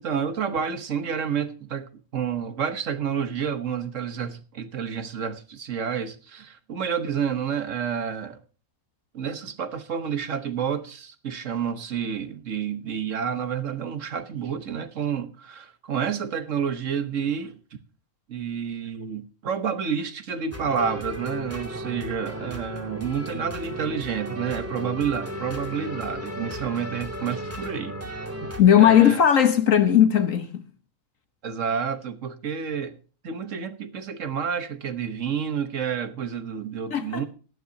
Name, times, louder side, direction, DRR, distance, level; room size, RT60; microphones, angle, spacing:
voice 1, 0.0-8.4 9.1-17.5 18.3-28.0 28.4-28.5 28.8-29.2 31.4-33.0 33.2-37.3, right 7 dB, 60° right, 1.4 m, -29 dB
sound 1, 20.5-28.6, equal, 10° right, 2.4 m, -35 dB
voice 2, 28.6-30.6 36.9-37.2, left 9 dB, 65° left, 1.4 m, -17 dB
17.0 x 12.5 x 2.7 m
omnidirectional pair, 1.5 m